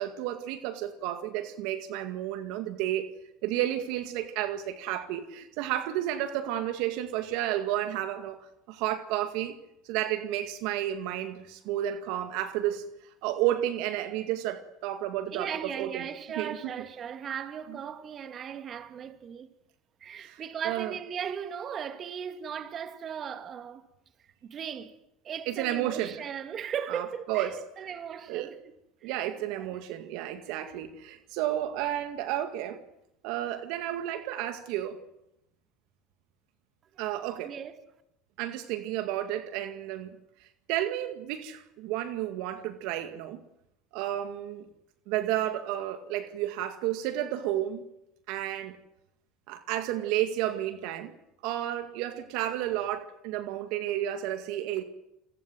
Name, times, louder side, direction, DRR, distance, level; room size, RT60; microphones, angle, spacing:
voice 1, 0.0-3.1 3.4-9.6 9.8-12.9 13.2-16.1 16.4-16.6 17.7-17.8 20.2-21.0 25.5-26.2 26.9-27.6 28.3-28.6 29.0-32.8 33.2-35.0 37.0-37.5 38.4-43.4 43.9-44.7 45.1-47.9 48.3-48.8 49.5-51.2 51.4-54.8, right 12 dB, 70° right, 2.0 m, -32 dB
voice 2, 15.3-19.5 20.0-23.8 24.4-25.0 25.2-28.6 29.0-29.2 29.6-29.7 36.9-37.0 37.4-37.7, right 8 dB, 45° right, 2.4 m, -37 dB
28.5 x 21.0 x 7.8 m
hypercardioid pair, 85°, 0 cm